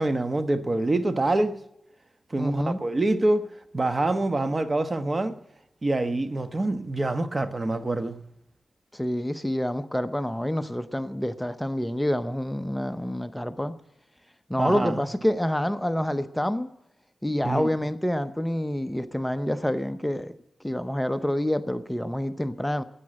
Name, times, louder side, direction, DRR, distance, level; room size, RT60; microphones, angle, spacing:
voice 1, 0.0-1.6 2.3-3.5 3.7-5.4 5.8-8.1 14.6-15.0 17.4-17.7, right 2 dB, 40° right, 1.1 m, -25 dB
voice 2, 2.4-2.8 8.9-13.7 14.5-16.7 17.2-20.3 20.6-22.8, equal, 5° left, 0.7 m, -27 dB
12.5 x 9.6 x 8.7 m
cardioid pair, 60°, 0 cm